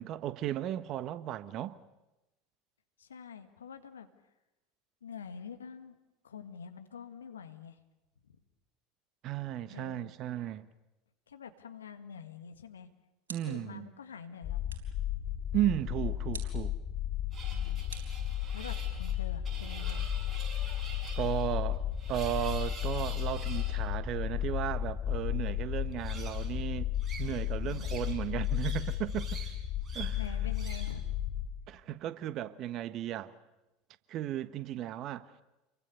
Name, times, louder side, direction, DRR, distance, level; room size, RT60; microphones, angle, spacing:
voice 1, 0.0-1.8 9.2-10.7 13.3-13.9 15.5-16.7 21.2-26.9 27.2-29.3 29.9-30.2 31.7-33.3 34.1-35.3, right 12 dB, 45° right, 1.4 m, -35 dB
voice 2, 3.0-4.1 5.0-6.0 6.2-7.8 8.2-8.4 9.7-10.1 11.3-12.9 13.5-14.7 17.5-17.8 18.5-20.1 27.6-27.9 30.1-31.1, left 6 dB, 80° left, 1.8 m, -46 dB
sound 1, 12.9-13.8 14.7-15.0 16.3-16.7 17.9-18.8, right 5 dB, 75° right, 4.0 m, -49 dB
sound 2, 14.4-31.5, left 11 dB, 45° left, 3.3 m, -34 dB
sound 3, 17.3-23.8 25.9-26.5 27.0-28.2 28.4-29.5 29.8-30.2 30.5-31.0, right 4 dB, 30° right, 6.7 m, -47 dB
28.5 x 23.0 x 7.0 m
figure-of-eight pair, 75°, 0 cm